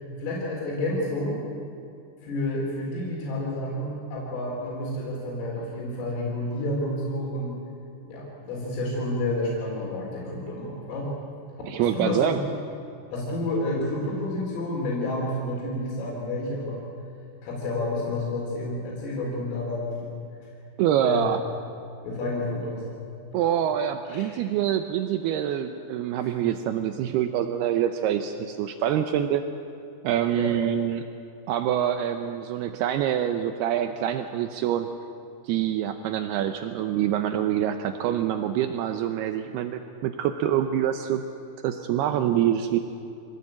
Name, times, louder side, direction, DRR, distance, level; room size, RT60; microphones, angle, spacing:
voice 1, 0.2-1.4 2.2-7.6 8.1-11.1 11.8-12.3 13.1-16.8 17.4-20.0 21.0-21.3 22.0-22.9 24.1-24.5 26.2-26.3 30.4-30.6, left 1 dB, 90° left, -3 dB, 6.8 m, -30 dB
voice 2, 11.7-12.4 20.8-21.4 23.3-29.4 30.0-31.0 31.5-34.9 35.4-41.2 41.6-42.8, right 10 dB, 85° right, 8 dB, 2.3 m, -25 dB
26.0 x 18.5 x 8.8 m, 2.7 s
omnidirectional pair, 5.7 m